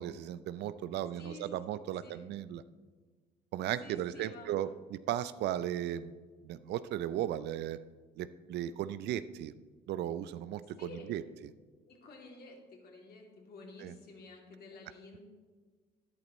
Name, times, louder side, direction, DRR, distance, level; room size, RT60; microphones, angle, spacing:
voice 1, 0.0-2.6 3.5-6.1 6.4-7.8 8.2-9.5 9.9-11.5 13.8-13.9, right 11 dB, 60° right, 14 dB, 0.5 m, -36 dB
voice 2, 3.8-4.6 10.8-11.1 11.9-15.2, left 3 dB, 55° left, 0 dB, 2.7 m, -51 dB
12.5 x 10.5 x 3.1 m, 1.4 s
hypercardioid pair, 60°, 20 cm